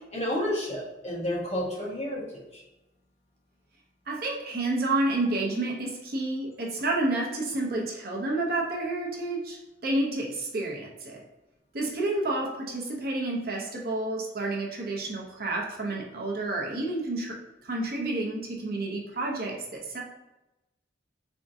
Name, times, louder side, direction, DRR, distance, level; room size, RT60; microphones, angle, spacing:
voice 1, 0.1-2.2 2.5-2.6, equal, 35° left, -6 dB, 1.4 m, -30 dB
voice 2, 4.1-11.2 11.7-20.0, right 2 dB, 55° right, -1 dB, 0.7 m, -30 dB
3.6 x 3.5 x 2.7 m, 0.94 s
head